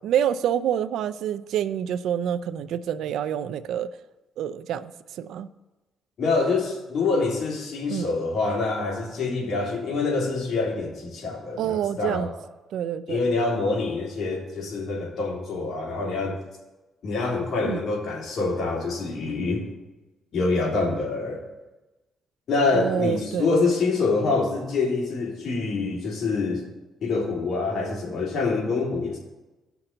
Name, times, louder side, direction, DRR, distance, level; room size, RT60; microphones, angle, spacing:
voice 1, 0.0-4.0 4.4-5.5 7.9-8.1 11.6-12.3 12.7-13.2 17.6-17.8 22.7-23.5, right 9 dB, 80° right, 14 dB, 0.4 m, -27 dB
voice 2, 6.2-12.3 13.1-16.4 17.0-19.6 20.3-21.4 22.5-26.6 27.0-29.2, left 3 dB, 60° left, -1 dB, 2.8 m, -26 dB
16.5 x 5.9 x 3.9 m, 1.1 s
cardioid pair, 90°, 0 cm